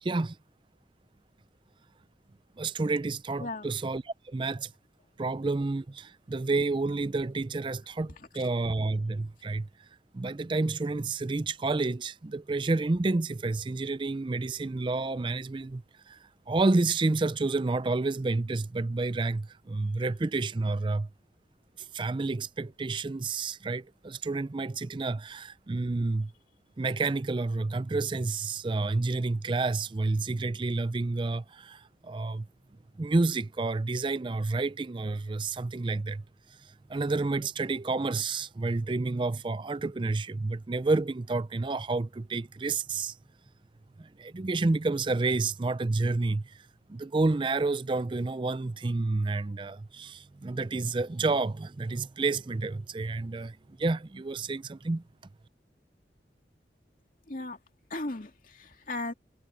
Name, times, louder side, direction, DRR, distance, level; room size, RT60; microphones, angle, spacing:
voice 1, 0.0-0.4 2.6-4.7 5.2-9.7 10.1-16.2 16.5-21.1 21.9-26.3 26.8-32.5 33.0-36.2 36.9-43.1 44.0-46.6 46.9-55.0, right 3 dB, 25° right, 0.4 m, -29 dB
voice 2, 3.4-3.7 8.2-8.5 57.3-57.6 57.9-59.1, left 2 dB, 50° left, 2.4 m, -37 dB
head